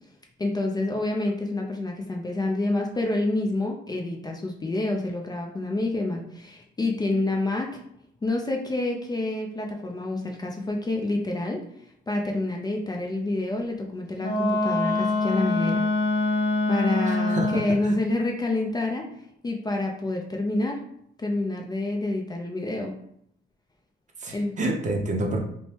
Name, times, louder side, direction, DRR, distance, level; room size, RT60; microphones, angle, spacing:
voice 1, 0.4-7.8 8.2-11.6 12.1-15.8 16.7-19.1 19.4-20.8 21.2-22.9 24.3-24.5, left 2 dB, 20° left, 1 dB, 0.4 m, -28 dB
Wind instrument woodwind instrument, 14.2-17.8, left 2 dB, 60° left, 0.9 m, -24 dB
voice 2, 17.1-17.9 24.2-25.4, right 1 dB, 40° right, 1 dB, 0.6 m, -29 dB
3.0 x 2.1 x 2.8 m, 0.71 s
cardioid pair, 90°, 20 cm